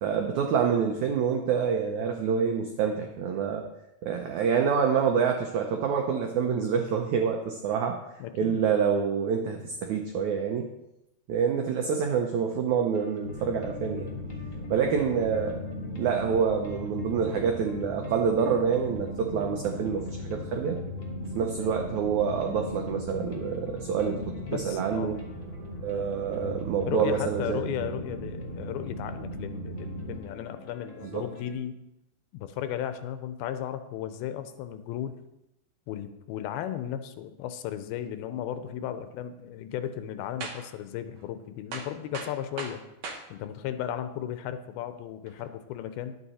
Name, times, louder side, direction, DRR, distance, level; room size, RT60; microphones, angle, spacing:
voice 1, 0.0-3.6 4.0-8.0 8.4-10.7 11.3-14.1 14.7-15.6 16.0-20.8 21.3-25.2 25.8-27.6 31.1-31.2, right 6 dB, 90° right, 3 dB, 1.6 m, -27 dB
voice 2, 8.2-8.6 24.5-25.2 26.9-31.8 32.3-35.2 35.9-42.8 43.3-46.2, left 10 dB, 85° left, 10 dB, 2.5 m, -35 dB
sound 1, 12.9-31.5, left 2 dB, 65° left, 0.7 m, -46 dB
sound 2, 13.2-30.2, equal, 50° right, 1.3 m, -38 dB
sound 3, 40.4-40.8 41.2-41.3 41.7-43.3 43.9-44.0 45.3-45.5, right 4 dB, 70° right, 1.6 m, -38 dB
11.0 x 8.5 x 4.2 m, 0.88 s
omnidirectional pair, 4.4 m